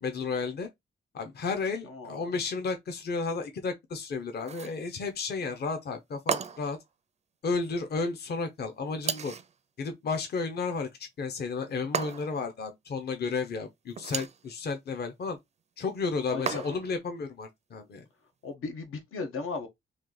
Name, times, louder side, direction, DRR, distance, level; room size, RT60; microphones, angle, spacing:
voice 1, 0.0-0.7 1.1-6.8 7.4-9.3 9.8-15.4 15.8-18.1, left 4 dB, 50° left, 0.7 m, -32 dB
voice 2, 1.9-2.2 16.3-16.6 18.4-19.7, left 4 dB, 90° left, 1.0 m, -36 dB
sound 1, 4.4-4.8 6.3-6.8 9.0-9.5 11.9-12.5 13.9-14.4 16.5-17.0, right 6 dB, 35° right, 0.4 m, -33 dB
3.1 x 2.7 x 3.8 m
wide cardioid pair, 140°, 21 cm